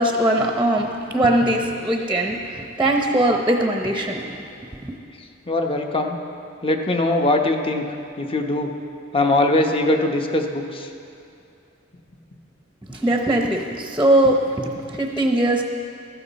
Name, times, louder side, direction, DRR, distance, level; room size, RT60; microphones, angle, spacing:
voice 1, 0.0-4.3 12.9-15.6, right 1 dB, 10° right, 2 dB, 0.8 m, -20 dB
voice 2, 5.5-6.2 6.6-7.8 8.2-8.7 9.1-10.9, left 2 dB, 30° left, 3 dB, 0.9 m, -21 dB
15.0 x 13.5 x 4.1 m, 2.7 s
head